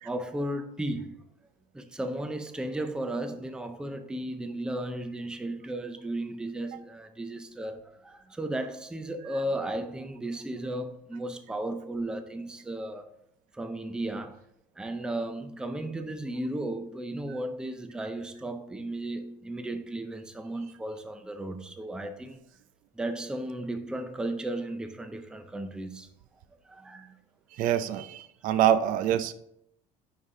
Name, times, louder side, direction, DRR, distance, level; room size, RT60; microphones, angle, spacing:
voice 1, 0.0-1.1 1.7-13.1 13.5-14.4 14.8-22.4 23.0-26.1 26.7-27.1, right 1 dB, 5° right, 0.4 m, -35 dB
voice 2, 27.5-29.3, right 10 dB, 60° right, 0.5 m, -25 dB
10.0 x 4.2 x 3.6 m
cardioid pair, 150°, 16 cm